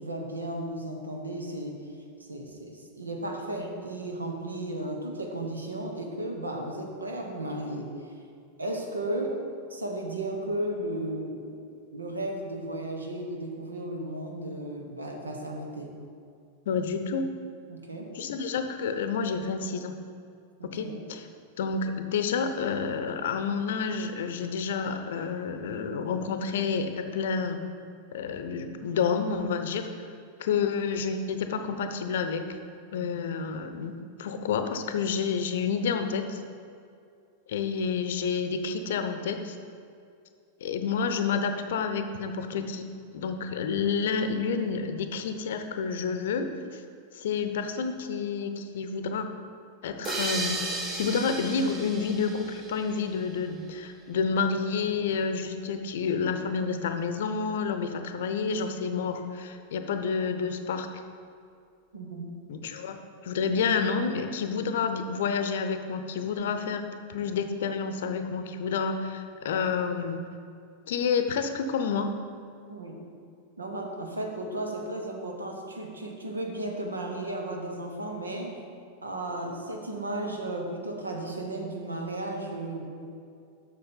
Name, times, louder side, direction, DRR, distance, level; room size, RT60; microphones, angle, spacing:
voice 1, 0.0-1.8 2.3-7.9 8.6-9.4 9.7-11.7 11.9-15.9 17.7-18.1 20.6-21.0 33.0-33.1 61.9-62.3 72.7-73.0 73.6-78.6 79.0-82.8, right 1 dB, 75° right, 2 dB, 1.2 m, -34 dB
voice 2, 16.7-17.3 18.1-19.9 20.7-21.3 21.6-27.6 28.1-29.9 30.4-32.6 32.9-33.9 34.2-36.4 37.5-39.6 40.6-42.8 43.1-46.8 47.1-49.3 49.8-60.9 62.5-70.2 70.9-72.1, left 5 dB, 60° left, 8 dB, 0.7 m, -29 dB
sound 1, 50.0-53.4, right 3 dB, 25° right, 1.0 m, -34 dB
7.7 x 6.3 x 5.5 m, 2.4 s
figure-of-eight pair, 90°, 0 cm